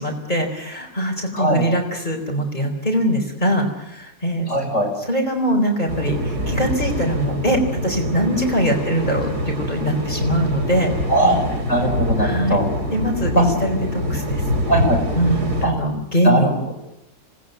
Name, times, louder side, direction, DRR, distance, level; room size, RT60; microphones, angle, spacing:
voice 1, 0.0-4.5 5.0-10.9 12.2-12.6 12.9-14.4 15.1-16.5, equal, 30° left, 2 dB, 4.4 m, -22 dB
voice 2, 4.5-4.9 11.1-11.4 11.7-12.6 13.3-13.4 14.7-15.0 15.6-15.7 16.2-16.5, right 1 dB, 50° left, 1 dB, 6.0 m, -19 dB
sound 1, 5.9-15.7, left 1 dB, 80° right, 4.8 m, -25 dB
27.0 x 19.5 x 9.3 m, 0.89 s
omnidirectional pair, 1.7 m